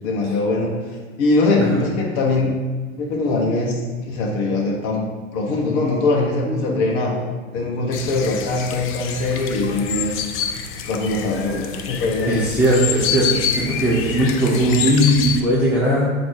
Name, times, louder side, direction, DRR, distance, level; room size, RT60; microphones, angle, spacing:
voice 1, 0.0-2.5 3.0-5.1 5.3-7.2 7.5-10.2 10.8-12.4, left 2 dB, 60° left, -1 dB, 1.5 m, -22 dB
voice 2, 6.4-6.8 12.3-16.1, equal, 5° right, -10 dB, 1.5 m, -19 dB
sound 1, 7.9-15.4, left 7 dB, 30° left, 0.6 m, -27 dB
8.0 x 3.2 x 4.9 m, 1.4 s
hypercardioid pair, 115°, 41 cm